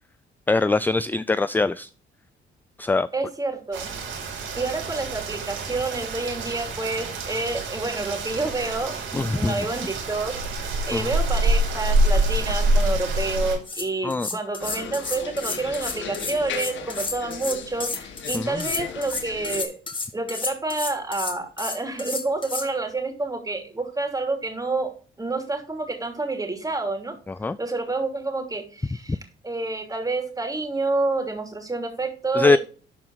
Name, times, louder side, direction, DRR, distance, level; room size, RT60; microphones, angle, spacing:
voice 1, 0.5-1.9 2.8-3.1 9.1-9.7 10.9-11.1 14.0-14.3 18.3-18.6 27.3-27.6 32.3-32.6, left 3 dB, 10° left, 0.3 m, -22 dB
voice 2, 3.1-4.0 4.5-9.0 9.3-10.3 10.9-19.8 20.1-24.9 25.2-27.1 27.6-29.2 29.4-32.6, right 3 dB, 20° right, 2.9 m, -28 dB
Rain, 3.7-13.6, right 1 dB, 75° right, 5.0 m, -26 dB
sound 1, 13.4-13.5 13.6-22.7, left 3 dB, 25° left, 2.0 m, -31 dB
sound 2, 14.6-19.6, left 6 dB, 70° left, 1.6 m, -36 dB
12.0 x 4.4 x 3.9 m
cardioid pair, 90°, 20 cm